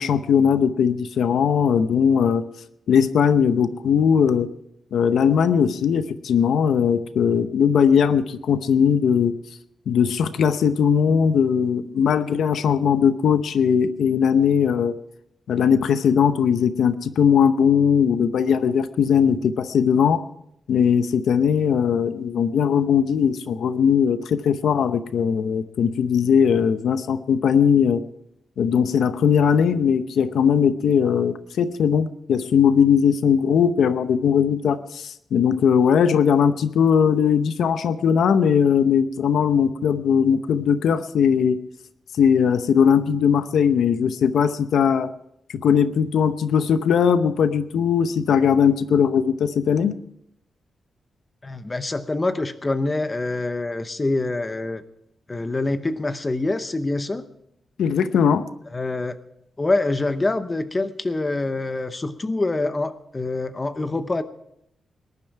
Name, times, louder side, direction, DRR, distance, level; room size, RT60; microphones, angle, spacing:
voice 1, 0.0-2.4 2.9-4.5 4.9-9.3 9.9-14.9 15.5-20.2 20.7-28.0 28.6-41.6 42.2-45.1 45.5-49.9 57.8-58.4, left 7 dB, 85° left, 12 dB, 0.7 m, -19 dB
voice 2, 51.4-54.8 55.3-57.2 58.7-59.1 59.6-64.2, left 2 dB, 20° left, 11 dB, 0.8 m, -25 dB
19.5 x 11.0 x 4.7 m, 0.77 s
wide cardioid pair, 160°, 0 cm